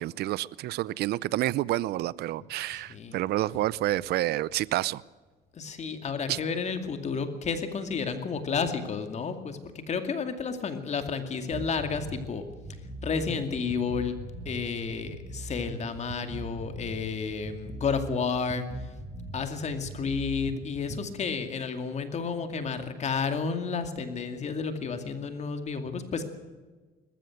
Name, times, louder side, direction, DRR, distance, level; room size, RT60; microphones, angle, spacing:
voice 1, 0.0-5.0 6.3-6.4, right 15 dB, 70° right, 0.6 m, -29 dB
voice 2, 2.7-3.2 5.5-9.6 9.9-12.5 13.0-18.9 19.3-26.3, left 5 dB, 40° left, 2.4 m, -31 dB
sound 1, 11.5-21.1, right 1 dB, 15° right, 4.5 m, -41 dB
20.5 x 14.5 x 9.4 m
cardioid pair, 110°, 17 cm